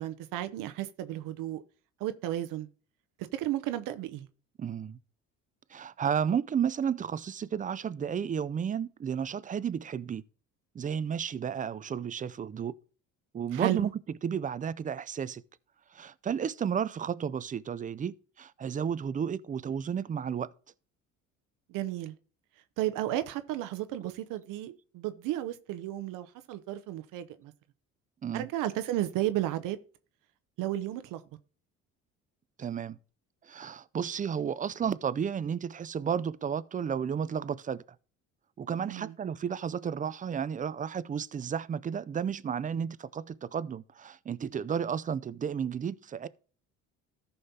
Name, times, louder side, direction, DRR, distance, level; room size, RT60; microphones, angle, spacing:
voice 1, 0.0-1.6 2.0-2.7 3.3-4.3 13.5-13.9 21.7-22.1 22.8-27.5 28.3-29.8 30.6-31.2 38.8-39.1, right 13 dB, 75° right, 0.7 m, -33 dB
voice 2, 4.6-5.0 5.7-10.2 10.7-12.7 13.3-13.9 14.2-15.4 15.9-20.5 24.0-24.1 28.2-28.5 32.6-33.0 33.4-37.8 38.6-46.3, right 7 dB, 25° right, 0.4 m, -32 dB
14.0 x 5.6 x 2.8 m
supercardioid pair, 80°, 33 cm